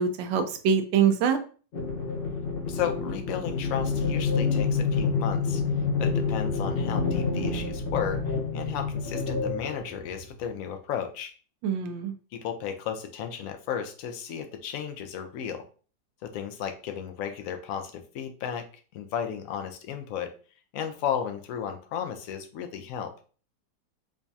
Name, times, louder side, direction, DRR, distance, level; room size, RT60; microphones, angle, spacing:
voice 1, 0.0-1.4 11.6-12.1, right 7 dB, 85° right, 8 dB, 1.3 m, -24 dB
sound 1, 1.7-10.5, left 4 dB, 45° left, 0.7 m, -28 dB
voice 2, 2.6-5.6 6.0-11.3 12.3-15.6 16.2-18.6 18.9-20.3 20.7-23.1, left 8 dB, 80° left, 5 dB, 0.7 m, -34 dB
5.0 x 2.3 x 2.7 m, 0.39 s
omnidirectional pair, 2.0 m